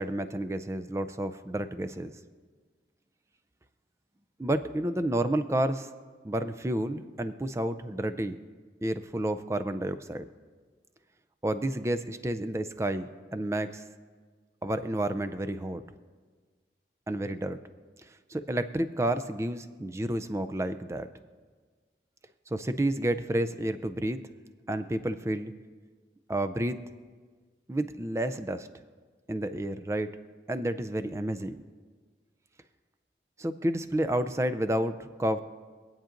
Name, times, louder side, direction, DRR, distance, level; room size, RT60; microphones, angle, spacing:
voice 1, 0.0-2.1 4.4-5.9 6.2-8.4 8.8-10.3 11.4-13.8 14.6-15.8 17.1-17.6 18.3-21.1 22.5-24.2 24.7-25.5 26.3-26.8 27.7-28.7 29.3-30.1 30.5-31.6 33.4-35.4, right 1 dB, 15° right, 10 dB, 0.4 m, -30 dB
25.5 x 8.8 x 2.6 m, 1.5 s
head